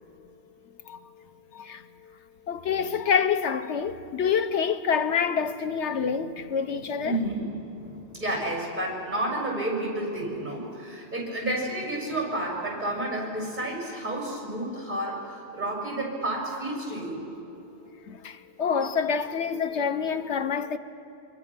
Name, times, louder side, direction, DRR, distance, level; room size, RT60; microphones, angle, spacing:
voice 1, 1.5-1.8 2.5-7.2 18.1-20.8, left 6 dB, 90° left, 1.2 m, -27 dB
voice 2, 6.7-17.2, right 1 dB, 45° right, 6.7 m, -31 dB
28.0 x 24.5 x 6.1 m
omnidirectional pair, 1.2 m